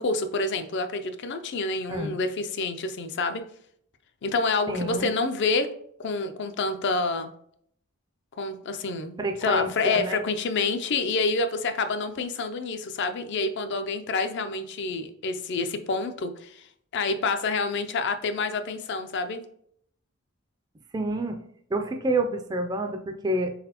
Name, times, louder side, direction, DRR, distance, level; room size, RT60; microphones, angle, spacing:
voice 1, 0.0-3.4 4.2-5.7 6.0-7.3 8.4-16.7 16.9-19.4, left 3 dB, 55° left, 8 dB, 0.4 m, -28 dB
voice 2, 1.9-2.2 4.7-5.1 9.2-10.2 20.9-21.4 21.7-23.5, right 1 dB, 20° right, 5 dB, 0.4 m, -28 dB
4.0 x 3.9 x 2.9 m, 0.67 s
head